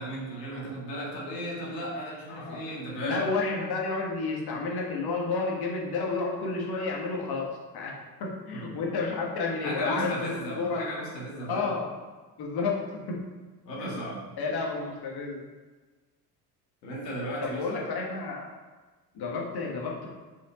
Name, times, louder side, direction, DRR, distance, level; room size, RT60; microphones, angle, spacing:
voice 1, 0.0-3.3 8.5-8.7 9.6-11.7 13.6-14.2 16.8-17.9, equal, 80° left, -5 dB, 2.2 m, -35 dB
voice 2, 3.0-7.5 7.7-7.9 8.2-10.3 10.6-10.9 11.4-11.9 12.4-13.2 13.8-13.9 14.4-15.4 17.4-18.5 19.1-20.1, left 4 dB, 50° left, -2 dB, 2.1 m, -31 dB
6.3 x 5.4 x 4.5 m, 1.3 s
figure-of-eight pair, 60°, 49 cm